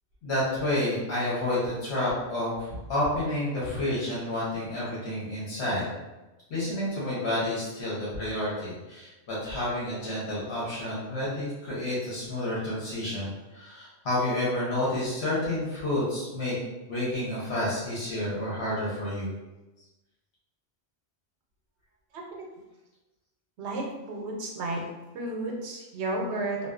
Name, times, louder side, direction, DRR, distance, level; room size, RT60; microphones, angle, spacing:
voice 1, 0.2-5.9 6.5-16.6 16.9-19.3, left 1 dB, 75° left, -8 dB, 1.1 m, -30 dB
voice 2, 22.1-22.5 23.6-24.8 25.1-26.7, right 2 dB, 80° right, 0 dB, 0.9 m, -32 dB
2.4 x 2.3 x 2.3 m, 1.1 s
omnidirectional pair, 1.1 m